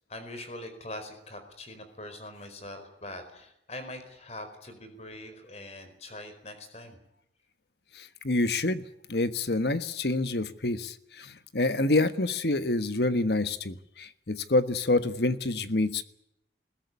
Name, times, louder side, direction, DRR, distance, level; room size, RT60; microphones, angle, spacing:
voice 1, 0.1-7.0, left 1 dB, 35° left, 8 dB, 4.6 m, -43 dB
voice 2, 8.2-8.8 9.1-16.0, left 2 dB, 70° left, 12 dB, 1.4 m, -27 dB
21.0 x 16.5 x 9.6 m, 0.81 s
head